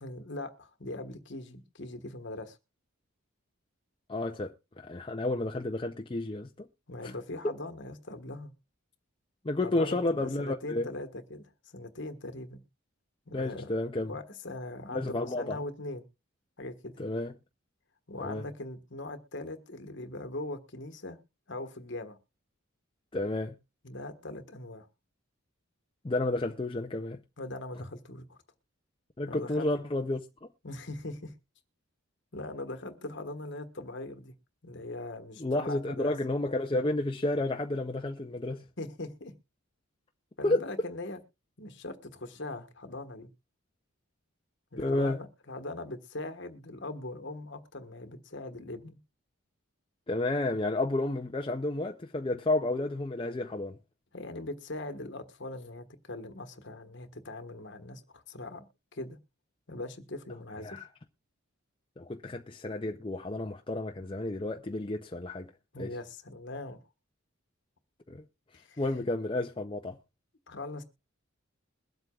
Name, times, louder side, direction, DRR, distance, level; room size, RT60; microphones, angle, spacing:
voice 1, 0.0-2.6 6.9-8.5 9.6-12.6 13.3-13.7 14.1-16.0 16.6-17.1 18.1-21.2 21.5-22.2 23.8-24.9 27.4-28.4 29.3-29.7 30.6-31.3 32.3-34.3 34.6-36.1 38.8-39.3 40.4-41.2 41.6-43.3 44.7-49.0 54.1-58.7 58.9-59.2 59.7-60.8 65.7-66.8 68.5-68.8 70.5-70.8, left 2 dB, 55° left, 1.3 m, -40 dB
voice 2, 4.1-6.7 7.0-7.1 7.4-7.6 9.4-10.9 13.3-14.1 14.9-15.6 17.0-17.3 18.2-18.4 23.1-23.6 26.0-27.2 29.2-30.3 35.4-38.7 40.4-40.6 44.8-45.2 50.1-53.8 60.6-60.9 62.0-65.5 65.8-65.9 68.1-68.2 68.8-70.0, left 2 dB, 25° left, 0.5 m, -31 dB
22.0 x 8.0 x 2.4 m
head